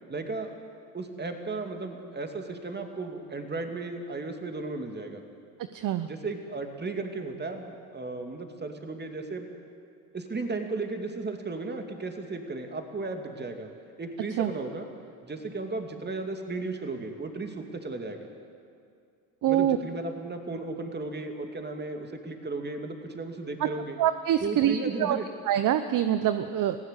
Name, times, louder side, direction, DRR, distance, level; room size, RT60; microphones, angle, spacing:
voice 1, 0.1-0.5 0.9-5.2 6.0-9.5 10.1-13.7 14.0-14.9 15.2-18.3 19.5-24.0 24.4-25.3, right 3 dB, 20° right, 5 dB, 2.7 m, -35 dB
voice 2, 5.7-6.1 14.4-14.5 19.4-19.8 24.0-25.2 25.5-26.8, right 11 dB, 45° right, 11 dB, 0.9 m, -25 dB
19.5 x 16.0 x 8.4 m, 2.4 s
hypercardioid pair, 75°, 45 cm